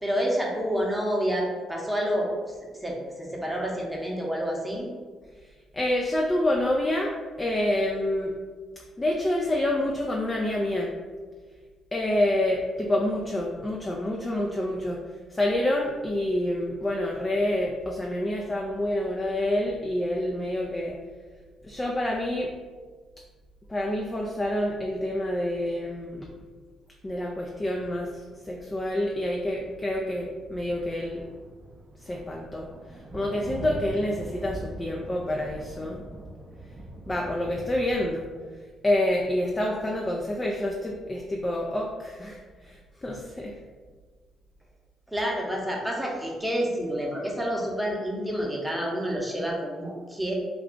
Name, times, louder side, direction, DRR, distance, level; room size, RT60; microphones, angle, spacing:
voice 1, 0.0-2.3 2.8-4.9 45.1-50.3, equal, 5° right, -2 dB, 0.8 m, -28 dB
voice 2, 5.7-7.1 7.4-8.3 9.0-10.9 11.9-15.0 15.3-21.0 21.6-22.5 23.7-26.3 27.0-31.3 32.0-32.7 33.1-36.0 37.1-38.3 38.8-43.5, left 1 dB, 25° left, -1 dB, 0.4 m, -27 dB
sound 1, 27.7-28.5 29.2-30.3 30.5-38.1, right 2 dB, 35° right, 0.4 m, -42 dB
2.4 x 2.3 x 3.6 m, 1.5 s
supercardioid pair, 60°, 0 cm